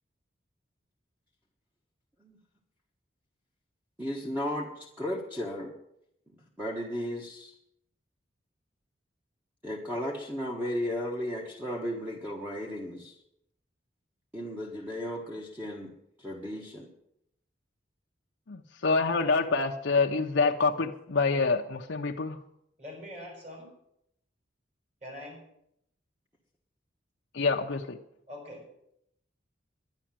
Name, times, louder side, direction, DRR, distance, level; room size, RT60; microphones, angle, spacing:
voice 1, 4.0-5.7 6.6-7.5 9.6-13.1 14.3-15.9 16.2-16.9, equal, 10° right, -1 dB, 1.3 m, -35 dB
voice 2, 18.5-22.4 27.3-28.0, left 4 dB, 70° left, 1 dB, 0.7 m, -26 dB
voice 3, 22.8-23.7 25.0-25.4 28.3-28.6, left 1 dB, 35° right, 0 dB, 5.8 m, -43 dB
11.5 x 10.5 x 7.5 m, 0.76 s
head